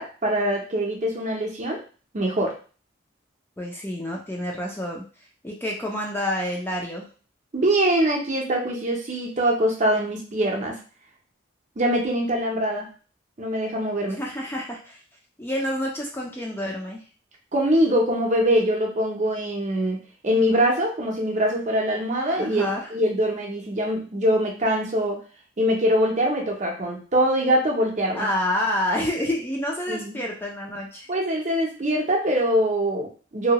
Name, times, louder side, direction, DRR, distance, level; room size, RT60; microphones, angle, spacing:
voice 1, 0.0-1.8 2.1-2.5 7.5-10.8 11.8-12.9 13.4-14.2 17.5-20.0 20.2-25.2 25.6-28.3 29.9-30.2 31.1-33.5, equal, 40° right, 0 dB, 0.6 m, -23 dB
voice 2, 3.6-5.0 5.4-7.1 14.2-15.0 15.4-17.0 22.3-22.9 28.1-31.1, left 1 dB, 10° left, -2 dB, 0.4 m, -28 dB
2.7 x 2.2 x 2.8 m, 0.38 s
head